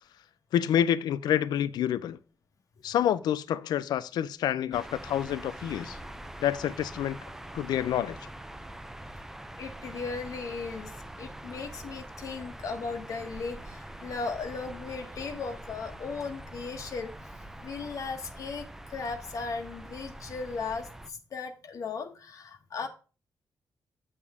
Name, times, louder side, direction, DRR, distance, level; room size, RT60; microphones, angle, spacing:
voice 1, 0.5-2.2 2.8-6.0 6.4-7.2 7.5-8.3, left 10 dB, 90° left, 0.5 m, -28 dB
sound 1, 4.7-21.1, right 1 dB, 5° right, 0.5 m, -44 dB
voice 2, 9.6-10.9 11.2-17.1 17.6-22.9, left 4 dB, 55° left, 1.0 m, -37 dB
8.5 x 6.6 x 3.5 m
wide cardioid pair, 135°, 7 cm